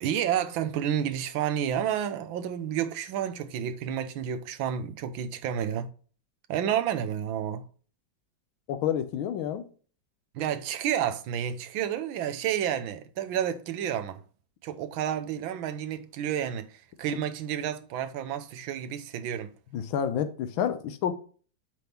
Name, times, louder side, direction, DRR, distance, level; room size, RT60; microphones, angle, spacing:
voice 1, 0.0-5.9 6.5-7.6 10.3-14.2 14.6-19.5, right 9 dB, 85° right, 1.5 m, -30 dB
voice 2, 8.7-9.6 19.7-21.1, left 9 dB, 90° left, 1.6 m, -29 dB
8.0 x 3.5 x 5.8 m
omnidirectional pair, 2.1 m